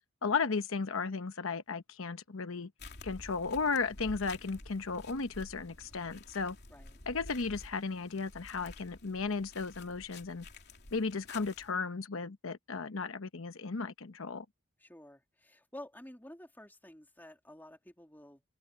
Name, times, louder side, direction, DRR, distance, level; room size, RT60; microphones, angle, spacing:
voice 1, 0.2-2.7 3.0-6.6 7.1-10.5 10.9-14.4, left 4 dB, 85° left, 0.9 m, -35 dB
sound 1, 2.8-11.7, left 2 dB, 55° left, 3.3 m, -51 dB
voice 2, 14.8-18.4, left 1 dB, 10° left, 3.2 m, -51 dB
open air
head